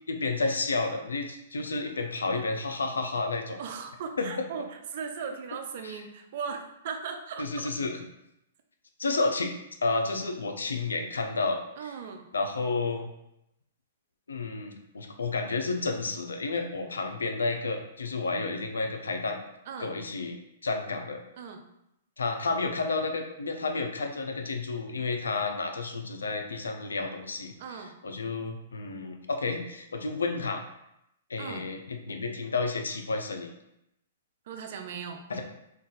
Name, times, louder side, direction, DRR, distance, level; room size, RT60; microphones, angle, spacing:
voice 1, 0.1-3.6 4.2-4.3 5.8-6.0 7.4-8.0 9.0-9.5 9.8-11.6 12.3-13.1 14.3-19.4 19.8-20.4 20.6-21.2 22.2-27.5 28.0-30.6 31.3-33.5 35.3-35.4, left 3 dB, 90° left, 5 dB, 0.4 m, -31 dB
voice 2, 3.6-7.7 11.8-12.3 19.7-20.0 21.4-21.6 27.6-28.0 31.4-31.7 34.5-35.3, right 6 dB, 55° right, 6 dB, 0.4 m, -38 dB
2.5 x 2.3 x 3.8 m, 0.83 s
hypercardioid pair, 125°, 0 cm